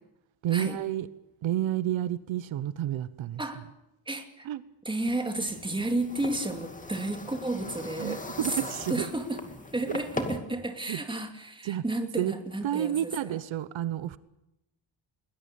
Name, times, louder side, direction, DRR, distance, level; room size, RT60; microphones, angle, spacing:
voice 1, 0.4-1.1 1.4-3.4 4.4-4.6 8.0-9.1 9.9-10.0 10.9-11.0 11.6-11.8 12.2-12.3 12.6-14.2, right 12 dB, 85° right, 16 dB, 1.0 m, -30 dB
voice 2, 4.1-4.5 4.8-8.6 8.9-9.4 9.7-13.4, right 2 dB, 10° right, 6 dB, 2.4 m, -32 dB
sound 1, 5.1-10.4, left 2 dB, 15° left, 2.4 m, -40 dB
22.0 x 20.5 x 8.5 m, 0.88 s
wide cardioid pair, 170°, 45 cm